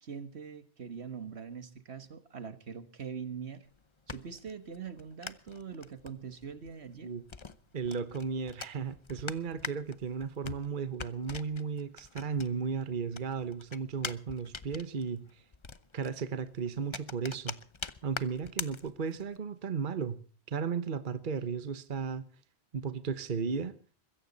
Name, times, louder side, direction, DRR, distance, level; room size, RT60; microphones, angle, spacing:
voice 1, 0.0-3.7 4.1-7.1, right 6 dB, 70° right, 1.7 m, -43 dB
sound 1, 3.7-12.8 13.1-19.4, left 4 dB, 30° left, 0.8 m, -44 dB
voice 2, 7.7-15.4 15.9-17.6 18.0-20.2 20.5-22.3 22.7-23.8, right 6 dB, 50° right, 1.2 m, -35 dB
22.0 x 16.0 x 4.0 m
omnidirectional pair, 1.1 m